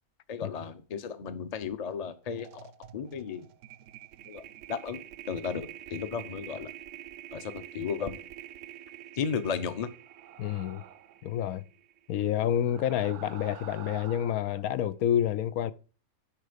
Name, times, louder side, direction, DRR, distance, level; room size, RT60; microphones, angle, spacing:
voice 1, 0.3-2.7 2.9-3.5 4.3-4.4 4.7-6.7 7.3-8.2 9.1-9.9, left 6 dB, 35° left, 0.7 m, -34 dB
sound 1, 1.9-2.1 2.4-12.6, right 13 dB, 65° right, 0.9 m, -47 dB
sound 2, 10.0-11.2 12.5-14.6, right 11 dB, 85° right, 1.2 m, -48 dB
voice 2, 10.4-10.8 11.2-11.7 12.1-15.7, left 10 dB, 80° left, 1.1 m, -28 dB
10.5 x 4.7 x 5.1 m
omnidirectional pair, 1.5 m